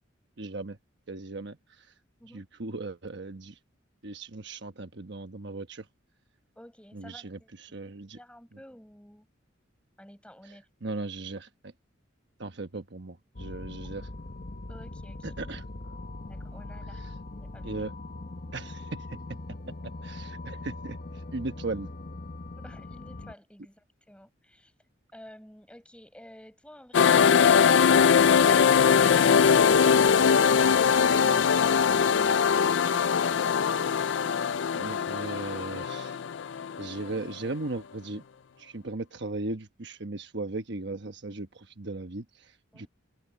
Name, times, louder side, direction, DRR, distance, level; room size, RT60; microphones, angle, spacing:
voice 1, 0.4-0.8 1.1-1.9 2.3-3.6 4.0-5.9 6.9-8.2 8.5-8.6 10.4-11.7 12.4-14.1 15.2-15.6 16.9-17.1 17.6-17.9 18.5-19.4 20.0-21.9 34.7-36.2 36.8-38.2 38.6-42.9, right 2 dB, 60° right, 1.1 m, -37 dB
voice 2, 6.6-7.8 8.1-9.3 10.0-10.6 14.7-15.4 16.3-17.0 17.4-17.7 22.6-24.7 25.1-29.0 42.7-42.9, equal, 5° left, 7.7 m, -51 dB
sound 1, 13.3-23.3, left 2 dB, 45° left, 1.0 m, -41 dB
sound 2, 26.9-37.3, left 6 dB, 65° left, 0.4 m, -21 dB
head